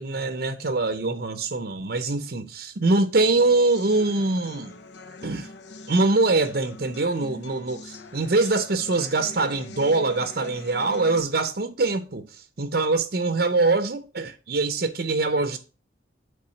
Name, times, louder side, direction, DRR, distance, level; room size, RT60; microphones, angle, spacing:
voice 1, 0.0-4.7 5.2-5.5 5.9-15.6, right 3 dB, 55° right, 0.7 m, -23 dB
sound 1, 3.2-11.2, left 2 dB, 65° left, 0.6 m, -43 dB
8.6 x 3.6 x 6.3 m
head